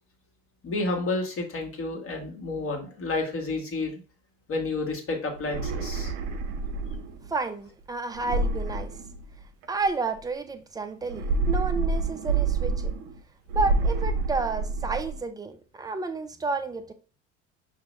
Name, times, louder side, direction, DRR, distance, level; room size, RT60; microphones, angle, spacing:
voice 1, 0.6-3.9 4.5-6.1, left 3 dB, 35° left, 1.6 m, -30 dB
sound 1, 5.4-7.3 8.2-9.6 11.0-13.2 13.5-15.2, right 3 dB, 60° right, 0.9 m, -28 dB
voice 2, 7.3-8.9 9.7-12.9 13.5-16.9, right 3 dB, 10° right, 0.5 m, -31 dB
5.9 x 2.7 x 3.2 m
hypercardioid pair, 70°, 39 cm